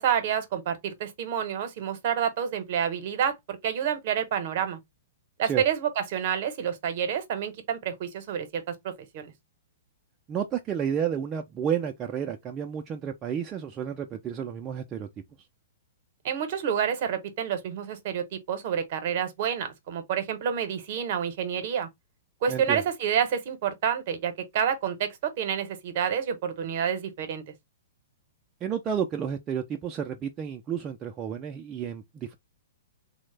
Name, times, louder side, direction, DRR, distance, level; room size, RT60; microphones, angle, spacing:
voice 1, 0.0-4.8 5.4-9.3 16.2-21.9 22.4-27.4, right 8 dB, 55° right, 0.8 m, -28 dB
voice 2, 10.3-15.1 22.5-22.8 28.6-32.3, right 8 dB, 25° right, 0.4 m, -31 dB
3.1 x 2.1 x 3.2 m
hypercardioid pair, 125°, 0 cm